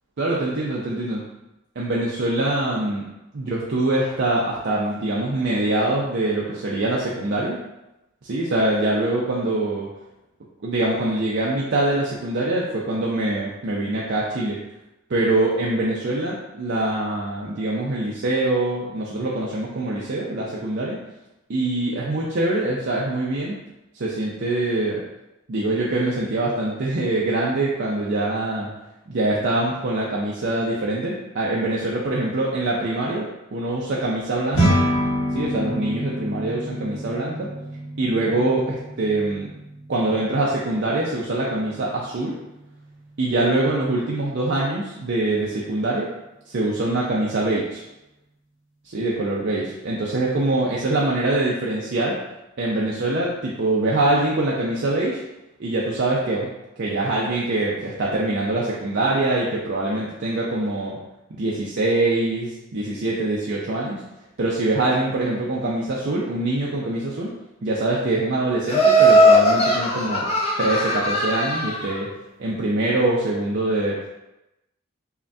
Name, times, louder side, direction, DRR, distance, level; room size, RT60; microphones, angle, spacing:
voice 1, 0.2-1.2 1.8-3.1 3.3-7.6 8.2-9.9 10.6-14.6 15.1-21.0 21.5-23.6 23.9-25.0 25.5-28.7 29.1-34.8 35.3-37.5 38.0-39.5 39.9-42.4 43.2-46.1 46.5-47.8 48.8-52.2 52.6-55.2 55.6-56.5 56.8-61.0 61.4-64.0 64.4-67.4 67.6-70.3 70.6-72.1 72.4-74.0, right 2 dB, 50° right, -4 dB, 0.5 m, -24 dB
sound 1, 34.5-44.0, equal, 65° left, 1.1 m, -28 dB
Laughter, 68.7-71.9, equal, 30° left, 0.6 m, -18 dB
5.6 x 2.2 x 2.7 m, 0.94 s
head